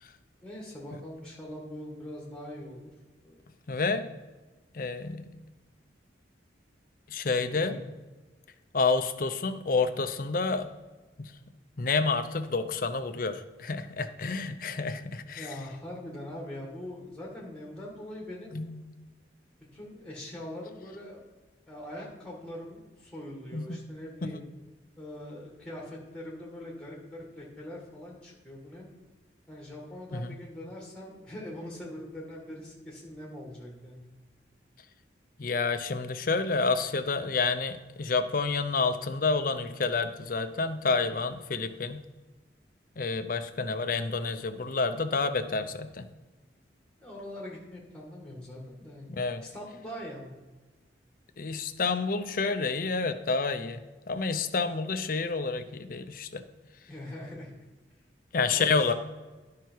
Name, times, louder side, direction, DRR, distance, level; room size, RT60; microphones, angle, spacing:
voice 1, 0.4-2.9 3.2-3.4 7.6-7.8 15.4-18.6 19.7-21.2 21.7-24.4 25.0-28.9 29.5-34.1 47.0-49.1 49.4-50.3 56.9-57.5 58.5-58.9, left 1 dB, 5° left, -2 dB, 2.0 m, -42 dB
voice 2, 3.7-4.1 4.7-5.4 7.1-7.8 8.7-10.7 11.2-11.3 11.8-15.5 18.5-18.8 23.5-23.8 24.2-24.3 30.1-30.4 35.4-42.0 43.0-46.1 49.1-49.4 51.4-53.8 54.1-56.4 58.3-58.9, left 4 dB, 50° left, 9 dB, 0.6 m, -29 dB
11.0 x 5.7 x 4.6 m, 1.2 s
head